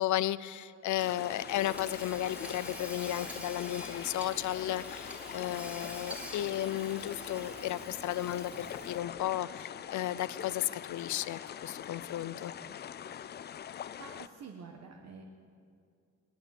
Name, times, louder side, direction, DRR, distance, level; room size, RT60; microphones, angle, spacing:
voice 1, 0.0-12.5, left 13 dB, 65° left, 18 dB, 0.7 m, -34 dB
sound 1, 1.0-14.3, left 9 dB, 35° left, 0.4 m, -44 dB
Hammer / Sawing, 1.0-9.2, equal, 5° right, 2.3 m, -46 dB
voice 2, 14.0-15.2, right 5 dB, 55° right, 2 dB, 1.5 m, -48 dB
20.5 x 20.0 x 7.2 m, 2.3 s
cardioid pair, 165°, 31 cm